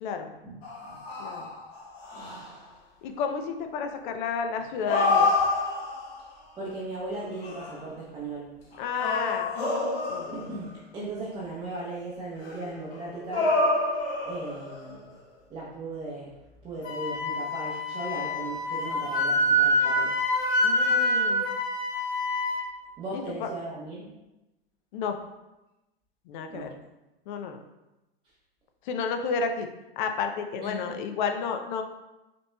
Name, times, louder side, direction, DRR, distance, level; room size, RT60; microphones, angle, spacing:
voice 1, 0.0-0.3 1.2-1.5 3.0-5.3 8.8-9.6 10.1-10.4 20.6-21.5 23.1-23.5 24.9-25.2 26.3-26.7 27.3-27.6 28.8-29.7 30.0-31.8, left 5 dB, 55° left, 6 dB, 0.5 m, -31 dB
sound 1, 0.6-2.6 4.6-6.3 7.2-7.8 8.7-10.7 12.4-14.9, left 3 dB, 85° left, 1.1 m, -28 dB
voice 2, 6.6-8.5 10.3-10.7 10.9-13.5 14.3-15.1 15.5-16.3 16.6-20.1 23.0-24.1 26.5-26.7 30.6-30.9, right 2 dB, 15° right, -7 dB, 0.7 m, -37 dB
Wind instrument woodwind instrument, 16.8-22.7, equal, 30° left, 0.8 m, -26 dB
5.1 x 2.9 x 2.2 m, 1.0 s
hypercardioid pair, 125°, 30 cm